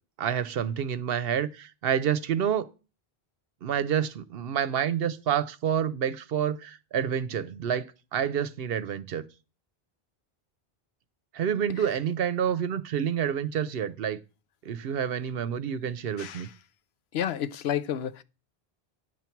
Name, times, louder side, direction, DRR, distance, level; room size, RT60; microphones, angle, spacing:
voice 1, 0.2-2.7 3.6-7.9 8.1-9.2 11.3-14.2 14.7-16.5, right 8 dB, 70° right, 0.8 m, -28 dB
voice 2, 17.1-18.2, left 10 dB, 80° left, 0.9 m, -30 dB
9.9 x 4.5 x 7.0 m
omnidirectional pair, 1.0 m